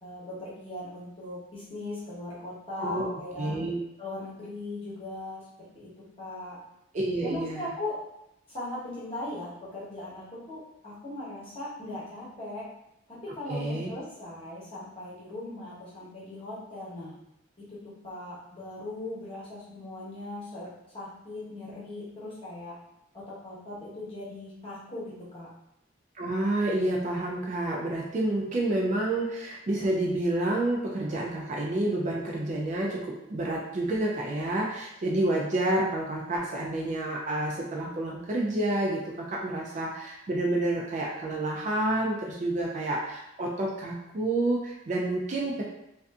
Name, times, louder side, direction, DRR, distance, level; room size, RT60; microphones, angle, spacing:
voice 1, 0.0-3.5 4.0-5.4 5.7-5.9 6.2-6.6 7.2-8.0 8.5-12.6 13.1-17.1 17.7-17.8 18.0-20.7 20.9-22.7 23.1-25.5, left 2 dB, 30° left, -9 dB, 0.9 m, -39 dB
voice 2, 2.8-3.1 3.4-3.8 6.9-7.7 13.5-13.9 26.2-33.0 33.3-39.0 39.3-45.6, right 1 dB, 35° right, -2 dB, 0.3 m, -29 dB
2.5 x 2.5 x 2.3 m, 0.84 s
head